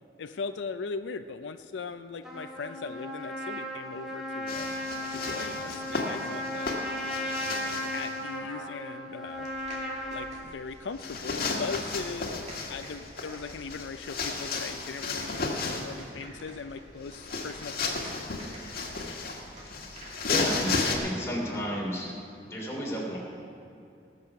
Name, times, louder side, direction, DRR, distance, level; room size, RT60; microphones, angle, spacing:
voice 1, 0.2-4.7 5.1-9.5 10.1-18.1, left 4 dB, 90° left, 10 dB, 0.5 m, -39 dB
Trumpet, 2.2-10.3, equal, 5° right, 1.7 m, -35 dB
sound 1, 4.5-8.2 11.0-16.0 17.0-21.0, left 4 dB, 60° left, 1.6 m, -33 dB
sound 2, 9.4-20.4, right 1 dB, 40° right, 2.5 m, -49 dB
voice 2, 20.2-22.1 22.5-23.2, equal, 15° left, -3 dB, 3.2 m, -32 dB
19.5 x 6.8 x 5.8 m, 2.6 s
head